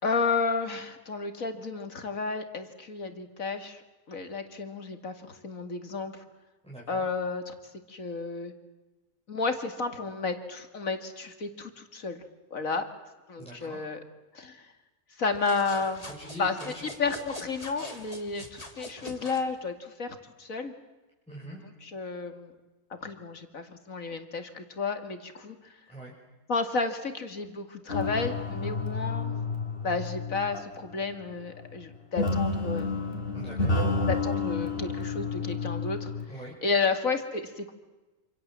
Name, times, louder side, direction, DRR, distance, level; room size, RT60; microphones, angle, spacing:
voice 1, 0.0-6.2 6.9-7.5 7.9-8.5 9.3-12.2 12.5-12.8 13.3-14.0 14.3-14.7 15.2-16.0 16.4-20.7 21.8-22.5 23.0-25.8 26.5-29.3 29.8-33.0 34.1-36.1 36.6-37.7, left 4 dB, 70° left, 7 dB, 2.7 m, -32 dB
voice 2, 6.6-7.0 13.4-13.8 16.0-16.9 21.3-21.6 25.9-26.1 33.3-33.8 36.3-36.5, right 1 dB, 5° left, -4 dB, 6.1 m, -43 dB
sound 1, 15.3-19.5, left 1 dB, 25° left, 3.0 m, -44 dB
sound 2, 27.9-30.9 32.2-36.2, left 3 dB, 40° left, 3.8 m, -30 dB
27.5 x 27.0 x 7.6 m, 1.1 s
omnidirectional pair, 1.5 m